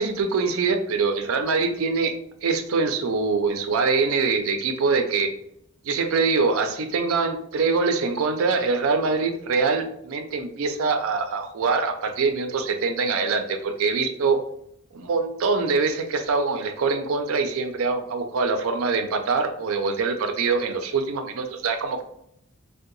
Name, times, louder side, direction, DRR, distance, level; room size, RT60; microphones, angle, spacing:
voice 1, 0.0-2.1 2.4-5.3 5.8-14.4 14.9-22.0, right 4 dB, 70° right, 7 dB, 0.4 m, -24 dB
2.7 x 2.1 x 3.8 m, 0.75 s
head